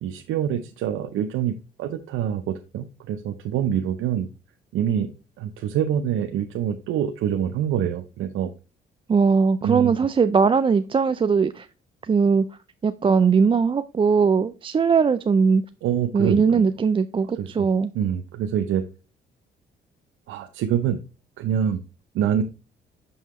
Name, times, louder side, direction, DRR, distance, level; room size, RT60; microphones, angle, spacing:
voice 1, 0.0-4.3 4.7-5.1 5.4-8.5 9.6-10.0 15.8-16.6 17.4-17.5 17.9-18.8 20.3-21.0 21.4-21.8 22.1-22.4, right 9 dB, 85° right, 0.6 m, -25 dB
voice 2, 9.1-11.7 12.0-12.5 12.8-15.6 16.1-17.9, right 5 dB, 25° right, 0.4 m, -20 dB
6.6 x 5.6 x 3.0 m
cardioid pair, 90°, 20 cm